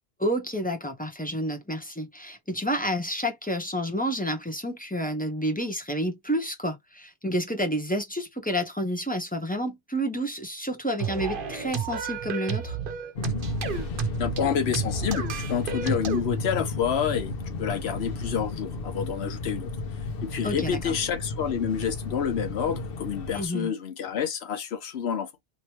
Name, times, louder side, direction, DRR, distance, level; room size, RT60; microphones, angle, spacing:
voice 1, 0.2-12.8 20.4-21.0 23.3-23.7, equal, 10° left, 0.8 m, -29 dB
sound 1, 11.0-16.2, right 7 dB, 60° right, 0.9 m, -31 dB
Fixed-wing aircraft airplane, 13.2-23.5, left 3 dB, 65° left, 1.0 m, -33 dB
voice 2, 14.2-19.7 20.2-25.3, left 8 dB, 90° left, 1.1 m, -28 dB
3.1 x 2.9 x 2.8 m
omnidirectional pair, 1.0 m